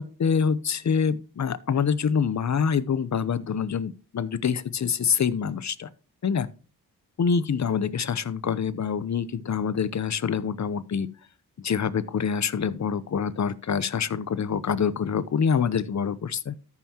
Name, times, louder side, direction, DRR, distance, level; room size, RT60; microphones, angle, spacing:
voice 1, 0.0-5.9 6.2-6.5 7.2-11.1 11.6-16.5, left 6 dB, 40° left, 0.8 m, -26 dB
13.5 x 5.6 x 2.9 m
supercardioid pair, 45°, 43 cm